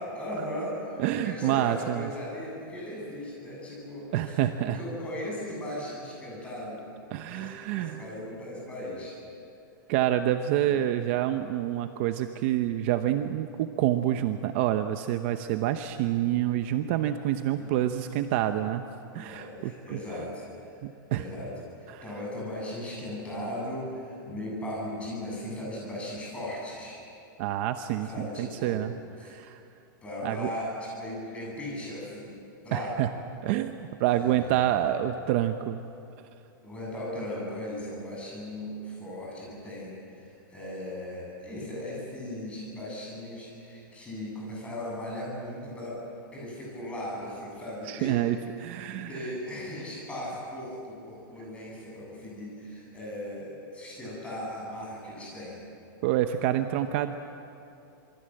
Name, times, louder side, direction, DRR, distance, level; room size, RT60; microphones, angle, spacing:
voice 1, 0.0-6.9 7.3-9.2 10.7-11.0 17.4-17.7 19.0-20.8 21.1-27.0 28.0-29.3 30.0-32.4 32.6-33.1 34.1-35.0 36.6-46.1 46.3-48.3 48.9-55.6, left 1 dB, 10° left, -4 dB, 7.9 m, -38 dB
voice 2, 1.0-2.1 4.1-4.8 7.1-8.0 9.9-18.9 19.1-20.0 20.8-21.3 21.9-22.0 27.4-28.9 29.2-29.6 30.2-30.5 32.7-33.1 33.4-35.8 47.9-49.2 56.0-57.1, right 12 dB, 35° right, 8 dB, 0.8 m, -27 dB
27.0 x 23.5 x 7.8 m, 2.7 s
supercardioid pair, 170°, 11 cm